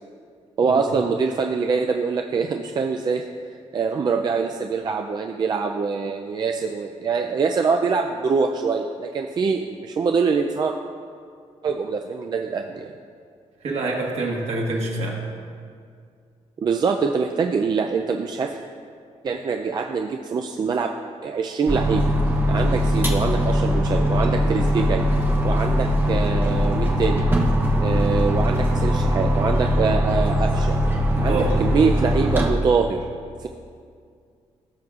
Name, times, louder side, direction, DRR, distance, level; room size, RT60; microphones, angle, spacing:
voice 1, 0.6-3.2 3.7-10.7 11.6-12.9 16.6-18.6 19.2-20.9 21.2-22.0 22.5-25.0 25.4-27.2 27.8-30.8 31.2-33.1 33.4-33.5, right 5 dB, 35° right, 3 dB, 0.3 m, -24 dB
voice 2, 13.6-15.2 31.2-31.7, right 2 dB, 65° right, -2 dB, 1.6 m, -26 dB
sound 1, 21.7-32.5, equal, 15° right, 0.8 m, -21 dB
15.5 x 6.2 x 2.4 m, 2.2 s
wide cardioid pair, 145°, 12 cm